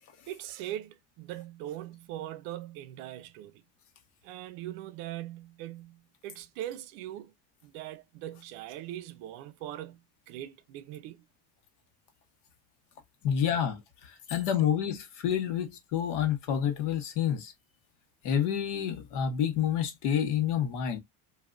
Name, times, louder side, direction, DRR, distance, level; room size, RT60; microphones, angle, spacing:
voice 1, 0.3-3.6 4.2-7.3 7.6-10.0 10.3-11.2, right 13 dB, 70° right, 0.6 m, -41 dB
voice 2, 13.2-17.5 18.2-21.0, left 9 dB, 85° left, 1.2 m, -29 dB
3.3 x 2.7 x 2.4 m
cardioid pair, 170°, 43 cm